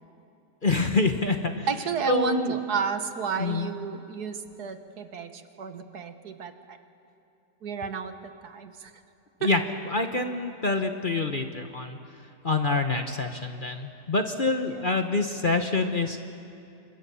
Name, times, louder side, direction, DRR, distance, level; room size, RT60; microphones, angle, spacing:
voice 1, 0.6-1.7 2.1-2.5 3.4-3.7 9.4-9.6 9.9-12.0 12.4-16.3, left 3 dB, 35° left, 6 dB, 1.0 m, -26 dB
voice 2, 1.7-6.8 7.6-8.9 9.4-9.5 14.7-14.9, right 5 dB, 65° right, 9 dB, 1.7 m, -31 dB
29.0 x 25.5 x 7.0 m, 2.7 s
omnidirectional pair, 1.8 m